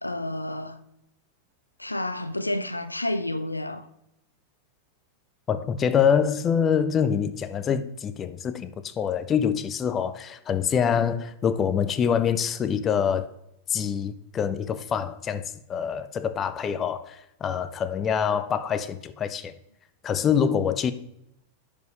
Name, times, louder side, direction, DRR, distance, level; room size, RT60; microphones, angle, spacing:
voice 1, 0.0-0.8 1.8-3.9, left 1 dB, 85° left, 0.4 m, -30 dB
voice 2, 5.5-13.3 13.7-19.5 20.0-20.9, left 7 dB, 25° left, 0.5 m, -25 dB
10.5 x 5.1 x 3.4 m
figure-of-eight pair, 90°, 0 cm